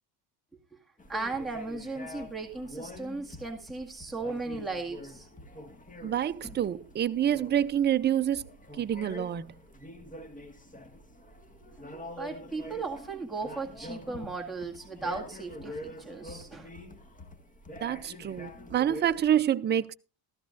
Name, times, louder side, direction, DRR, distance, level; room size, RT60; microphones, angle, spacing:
sound 1, 1.0-19.4, left 1 dB, 15° left, 1.8 m, -46 dB
voice 1, 1.1-5.3 11.9-16.7, right 3 dB, ahead, 2.0 m, -36 dB
voice 2, 6.0-8.5 8.8-9.5 17.8-19.9, right 10 dB, 25° right, 0.5 m, -27 dB
16.0 x 13.5 x 2.5 m
cardioid pair, 115°, 47 cm